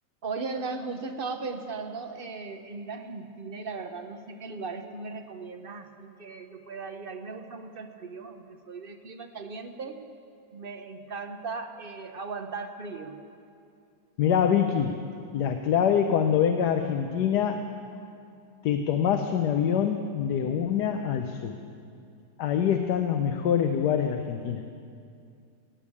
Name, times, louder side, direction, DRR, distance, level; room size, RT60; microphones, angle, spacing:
voice 1, 0.2-10.0 10.5-13.2, right 4 dB, 45° right, 7 dB, 0.9 m, -37 dB
voice 2, 14.2-15.0 15.3-17.7 18.6-21.6 22.4-24.6, left 8 dB, 90° left, 6 dB, 1.3 m, -25 dB
16.0 x 8.9 x 8.5 m, 2.5 s
omnidirectional pair, 1.7 m